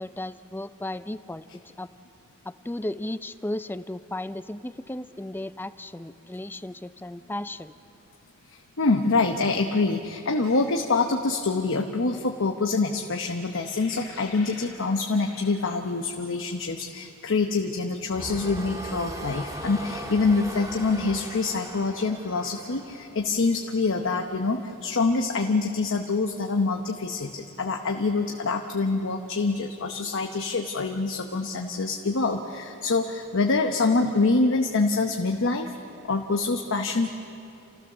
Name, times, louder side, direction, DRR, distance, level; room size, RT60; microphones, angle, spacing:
voice 1, 0.0-1.5 1.8-1.9 2.5-7.7, left 1 dB, 10° left, 13 dB, 0.4 m, -35 dB
voice 2, 8.5-35.7 36.0-37.1, left 3 dB, 60° left, 4 dB, 0.9 m, -25 dB
sound 1, 10.4-11.1 13.2-16.1, left 4 dB, 80° left, 2.5 m, -48 dB
sound 2, 18.1-23.3, equal, 15° right, 2.1 m, -38 dB
28.5 x 15.5 x 6.7 m, 2.6 s
head